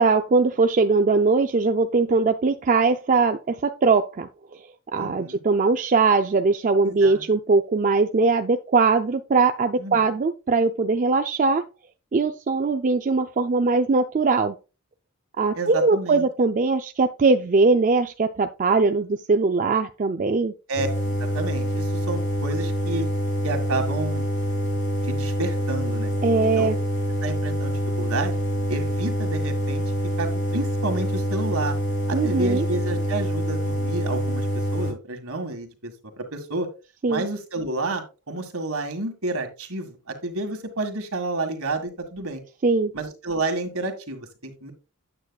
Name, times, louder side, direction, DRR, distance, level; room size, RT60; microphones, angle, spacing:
voice 1, 0.0-4.6 4.9-11.6 12.1-14.6 15.4-20.5 26.2-26.8 32.1-32.6 37.0-37.2 42.6-42.9, right 4 dB, 35° right, 0.4 m, -21 dB
voice 2, 5.0-5.4 6.8-7.3 9.8-10.0 15.5-16.2 20.7-20.9 21.2-23.1 23.4-24.3 25.0-26.1 26.4-26.7 27.2-28.4 28.7-29.8 30.2-31.8 32.1-34.5 34.7-36.7 37.1-42.4 42.9-44.7, right 2 dB, 65° right, 1.9 m, -30 dB
sound 1, 20.8-34.9, equal, 55° left, 2.9 m, -26 dB
8.9 x 8.1 x 2.3 m
head